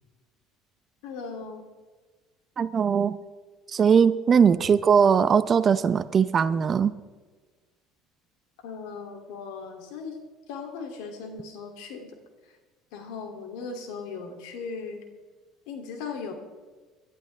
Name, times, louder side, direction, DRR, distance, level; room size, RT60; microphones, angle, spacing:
voice 1, 1.0-1.7 8.6-10.2 10.5-12.2 12.9-15.0 15.7-16.3, left 5 dB, 80° left, 4 dB, 2.6 m, -38 dB
voice 2, 2.6-3.2 3.7-6.9, right 6 dB, 35° right, 14 dB, 0.6 m, -20 dB
22.5 x 12.0 x 3.4 m, 1.4 s
supercardioid pair, 115°, 0 cm